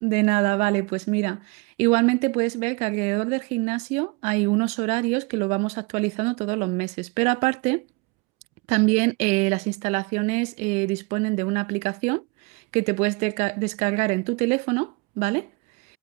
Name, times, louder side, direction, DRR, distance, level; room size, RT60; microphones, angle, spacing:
voice 1, 0.0-7.8 8.7-12.2 12.7-15.5, right 28 dB, 65° right, 0.8 m, -24 dB
supercardioid pair, 125°, 12 cm